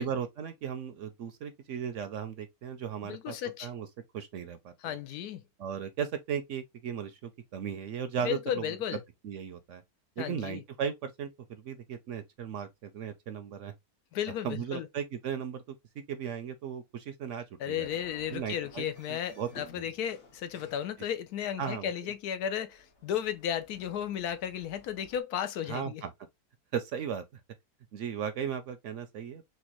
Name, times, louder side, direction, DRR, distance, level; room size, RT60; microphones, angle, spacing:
voice 1, 0.0-3.9 4.1-5.0 5.6-8.8 9.2-9.8 10.2-13.7 14.4-15.6 16.0-17.9 18.3-19.5 21.6-22.1 25.7-26.1 26.7-27.2 27.9-29.5, right 8 dB, 65° right, 0.8 m, -36 dB
voice 2, 3.0-3.7 4.8-5.4 8.2-9.0 10.2-10.6 14.1-14.9 17.6-26.0, left 9 dB, 85° left, 1.1 m, -34 dB
sound 1, 17.8-25.2, left 1 dB, 50° left, 1.4 m, -56 dB
4.3 x 2.3 x 2.9 m
omnidirectional pair, 1.6 m